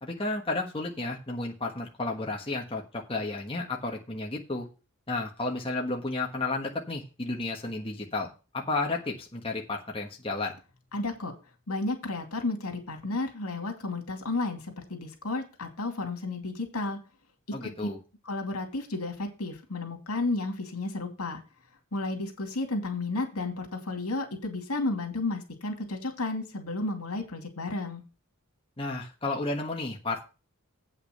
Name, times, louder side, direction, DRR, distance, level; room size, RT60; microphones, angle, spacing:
voice 1, 0.0-4.7 5.1-8.3 8.5-10.6 17.5-18.0 28.8-30.2, left 2 dB, 25° left, 0 dB, 1.3 m, -32 dB
voice 2, 10.9-11.3 11.7-17.0 17.6-17.9 18.2-21.4 21.9-28.0, left 2 dB, 85° left, 4 dB, 2.6 m, -32 dB
8.4 x 5.9 x 6.6 m, 0.32 s
head